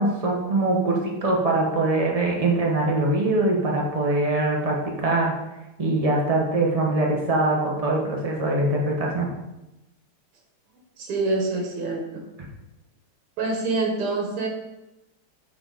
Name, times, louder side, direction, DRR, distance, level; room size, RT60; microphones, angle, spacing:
voice 1, 0.0-5.3 5.8-9.3, right 2 dB, 45° right, -1 dB, 0.4 m, -23 dB
voice 2, 11.0-12.2 13.4-14.5, right 3 dB, 80° right, 1 dB, 2.1 m, -26 dB
8.4 x 3.9 x 4.0 m, 0.98 s
omnidirectional pair, 2.4 m